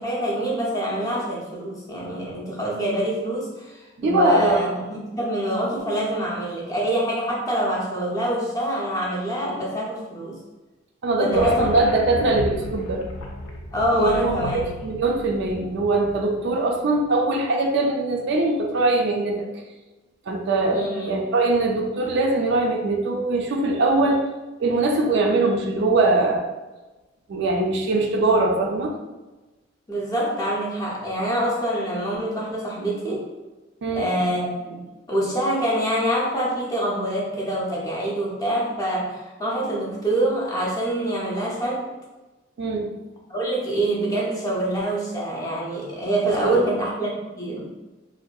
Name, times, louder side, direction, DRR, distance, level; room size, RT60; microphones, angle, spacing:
voice 1, 0.0-10.4 11.2-11.7 12.1-12.2 13.7-14.6 20.7-21.1 29.9-33.2 33.9-41.9 43.3-47.1 47.4-47.7, right 1 dB, 15° left, -4 dB, 0.4 m, -25 dB
voice 2, 4.0-4.6 11.0-13.0 13.9-19.5 20.3-24.2 24.6-26.4 27.3-28.9 33.8-34.1 42.6-42.9 46.2-46.7, right 2 dB, 60° right, 2 dB, 0.3 m, -22 dB
sound 1, 11.3-16.6, left 1 dB, 80° left, 0.4 m, -34 dB
2.6 x 2.1 x 2.3 m, 1.1 s
head